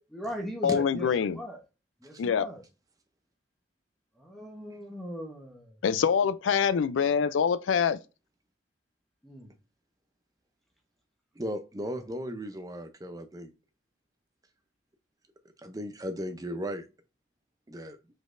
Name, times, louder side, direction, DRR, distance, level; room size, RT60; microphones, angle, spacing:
voice 1, 0.1-1.6 2.0-2.6 4.2-5.8 6.8-6.9 9.2-9.5 11.9-12.0, equal, ahead, 1.0 m, -39 dB
voice 2, 0.6-1.4 2.2-2.5 5.8-8.0, left 7 dB, 85° left, 0.4 m, -25 dB
voice 3, 11.4-13.5 15.6-16.9 17.7-18.0, equal, 20° right, 0.5 m, -36 dB
5.1 x 4.0 x 2.5 m
head